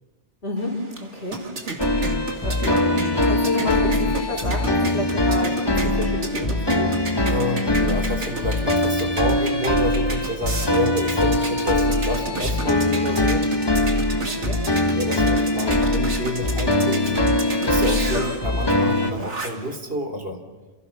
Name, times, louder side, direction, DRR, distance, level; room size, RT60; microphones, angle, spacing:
voice 1, 0.4-1.4 2.4-7.0 14.2-14.6 17.1-17.4 18.1-18.2, left 1 dB, 65° left, 0 dB, 5.5 m, -30 dB
sound 1, 0.6-19.8, right 3 dB, 85° right, 2.6 m, -34 dB
sound 2, 1.8-19.1, left 1 dB, 20° left, 1.3 m, -22 dB
voice 2, 7.2-13.5 14.9-17.1 17.5-20.4, equal, 55° right, 5 dB, 3.6 m, -29 dB
29.5 x 28.0 x 5.9 m, 1.2 s
omnidirectional pair, 1.2 m